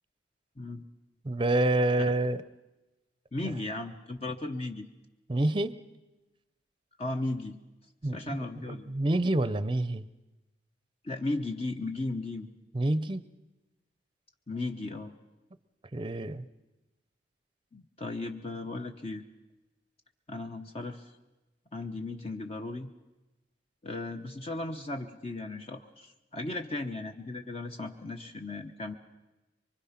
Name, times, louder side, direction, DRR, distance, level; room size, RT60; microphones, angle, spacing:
voice 1, 1.2-2.4 5.3-5.7 8.0-10.0 12.7-13.2 15.9-16.5, right 2 dB, 30° right, 14 dB, 0.7 m, -27 dB
voice 2, 3.3-4.9 7.0-7.6 8.1-8.9 11.0-12.5 14.5-15.1 17.7-19.2 20.3-21.1 21.7-22.9 23.8-28.9, left 2 dB, 35° left, 5 dB, 1.0 m, -36 dB
24.5 x 24.0 x 5.9 m, 1.1 s
head